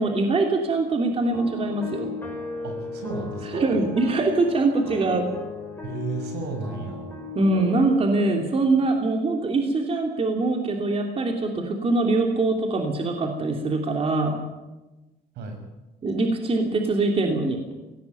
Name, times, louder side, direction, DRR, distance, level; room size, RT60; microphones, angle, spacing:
voice 1, 0.0-2.1 3.5-5.3 7.3-14.4 16.0-17.6, right 2 dB, 35° right, 3 dB, 2.9 m, -23 dB
sound 1, 1.1-8.4, left 4 dB, 10° left, 6.4 m, -36 dB
voice 2, 2.6-3.8 5.8-7.1 15.3-15.6, right 4 dB, 80° right, 5 dB, 6.5 m, -33 dB
17.5 x 16.5 x 9.5 m, 1.1 s
cardioid pair, 110°, 17 cm